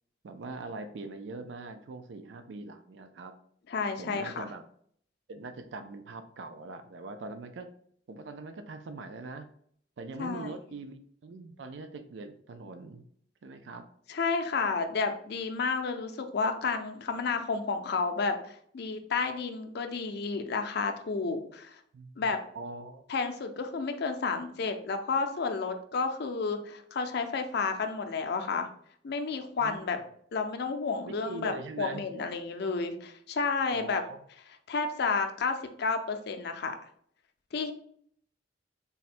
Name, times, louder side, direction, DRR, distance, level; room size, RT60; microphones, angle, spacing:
voice 1, 0.2-3.3 4.0-4.6 5.3-7.7 8.1-9.5 10.0-13.0 13.4-13.9 21.9-23.0 29.6-30.0 31.0-32.0 33.7-34.2, right 3 dB, 75° right, 9 dB, 0.4 m, -42 dB
voice 2, 3.7-4.4 10.2-10.5 14.1-21.8 22.2-22.4 23.1-28.7 29.0-30.0 30.3-34.0 34.7-36.7 37.5-37.7, left 4 dB, 60° left, 6 dB, 0.5 m, -31 dB
3.5 x 2.1 x 4.2 m, 0.63 s
head